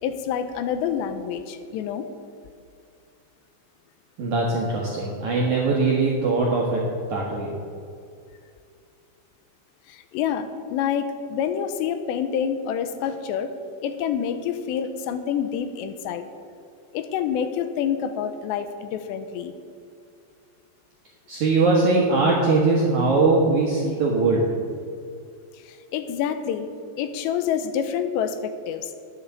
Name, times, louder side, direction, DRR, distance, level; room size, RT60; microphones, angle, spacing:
voice 1, 0.0-2.1 9.9-13.5 13.8-16.2 16.9-19.5 25.7-26.7 27.0-28.9, left 8 dB, 85° left, 9 dB, 2.7 m, -27 dB
voice 2, 4.2-7.5 21.3-24.4, right 3 dB, 65° right, -3 dB, 1.9 m, -21 dB
10.0 x 8.3 x 7.9 m, 2.3 s
omnidirectional pair, 5.4 m